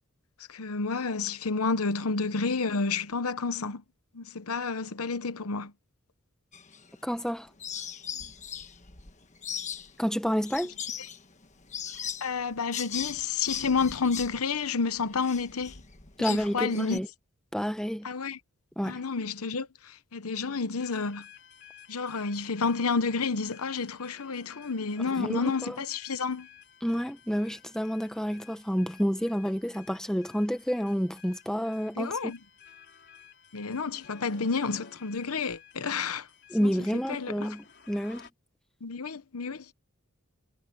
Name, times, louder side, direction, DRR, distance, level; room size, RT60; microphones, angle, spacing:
voice 1, 0.5-3.8 4.1-5.7 12.2-15.7 16.2-17.0 18.0-18.4 18.8-21.2 21.9-26.5 32.0-32.4 33.5-36.3 36.6-36.7 37.1-37.5 38.8-39.6, left 4 dB, 80° left, 1.0 m, -30 dB
sound 1, 6.5-7.3 7.6-17.0, left 8 dB, 35° left, 1.4 m, -39 dB
voice 2, 7.0-7.5 10.0-10.7 16.2-17.1 17.5-18.1 18.8-19.0 25.2-25.8 26.8-32.2 36.5-38.3, equal, 5° left, 1.3 m, -29 dB
sound 2, 20.8-38.3, left 8 dB, 50° left, 3.9 m, -54 dB
head